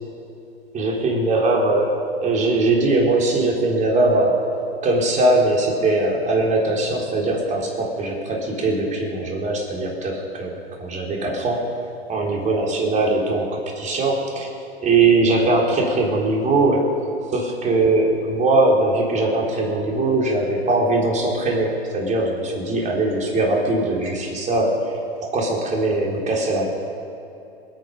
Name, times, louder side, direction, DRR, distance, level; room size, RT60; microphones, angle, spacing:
voice 1, 0.7-4.4 4.8-11.7 12.1-14.5 14.8-16.8 17.3-24.9 25.2-26.7, right 2 dB, 20° right, -1 dB, 3.8 m, -21 dB
27.0 x 9.3 x 5.2 m, 2.8 s
hypercardioid pair, 120°, 32 cm